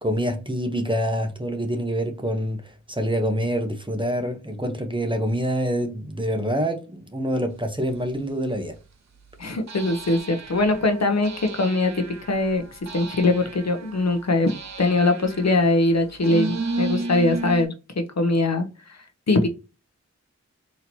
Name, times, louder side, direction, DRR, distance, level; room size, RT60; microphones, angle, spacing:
voice 1, 0.0-2.6 2.9-8.7, equal, 15° right, 0.8 m, -26 dB
sound 1, 8.1-8.2 9.7-17.6, right 3 dB, 65° right, 0.7 m, -33 dB
voice 2, 9.4-14.5 14.8-19.0 19.3-19.5, left 2 dB, 60° left, 0.7 m, -22 dB
4.2 x 2.8 x 2.7 m
wide cardioid pair, 55°, 29 cm